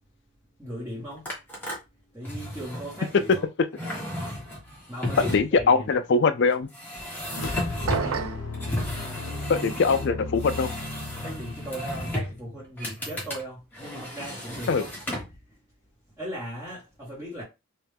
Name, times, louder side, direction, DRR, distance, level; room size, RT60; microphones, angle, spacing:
voice 1, 0.6-1.3 2.1-3.5 4.9-5.9 7.9-8.4 11.2-15.0 15.5-15.6 16.2-17.4, equal, 10° right, 1.8 m, -38 dB
sound 1, 1.2-1.7 2.2-3.4 3.7-5.6 6.7-8.2 8.5-10.1 10.4-12.4 12.8-13.4 13.7-15.4, left 1 dB, 10° left, 1.3 m, -34 dB
voice 2, 5.3-6.7 9.5-10.7 14.7-14.8, left 4 dB, 50° left, 0.4 m, -22 dB
sound 2, 7.3-12.7, left 2 dB, 80° left, 0.8 m, -36 dB
sound 3, 7.9-8.5, right 6 dB, 70° right, 0.4 m, -29 dB
3.4 x 3.2 x 3.4 m
head